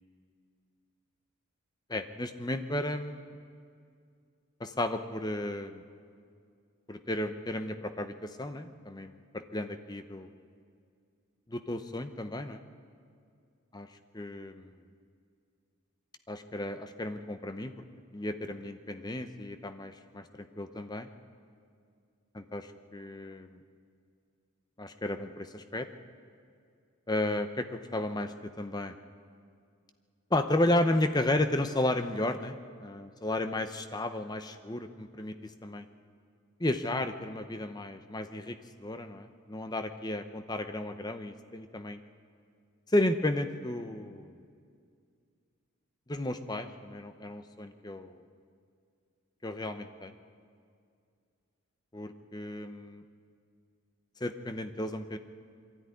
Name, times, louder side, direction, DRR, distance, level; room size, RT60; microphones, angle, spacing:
voice 1, 1.9-3.3 4.6-5.8 6.9-10.3 11.5-12.6 13.7-13.9 14.1-14.8 16.3-17.7 18.1-21.1 22.3-23.6 24.8-25.9 27.1-29.0 30.3-32.5 32.8-35.8 36.6-42.0 42.9-44.4 46.1-48.2 49.4-50.1 51.9-53.0 54.2-55.2, left 1 dB, 20° left, 8 dB, 0.8 m, -33 dB
22.5 x 13.0 x 9.7 m, 2.3 s
head